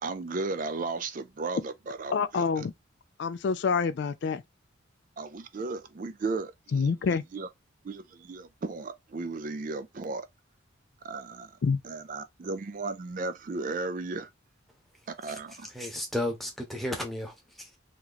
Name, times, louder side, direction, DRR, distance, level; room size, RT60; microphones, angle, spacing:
voice 1, 0.0-2.7 5.2-6.9 7.3-7.5 7.8-10.3 11.0-11.6 11.8-14.3 15.2-15.7, right 3 dB, 40° right, 0.4 m, -35 dB
voice 2, 2.1-2.7 3.2-4.4 6.7-7.2 11.6-11.8, left 5 dB, 55° left, 0.3 m, -27 dB
voice 3, 15.7-17.8, left 1 dB, ahead, 0.9 m, -34 dB
2.9 x 2.9 x 3.9 m
head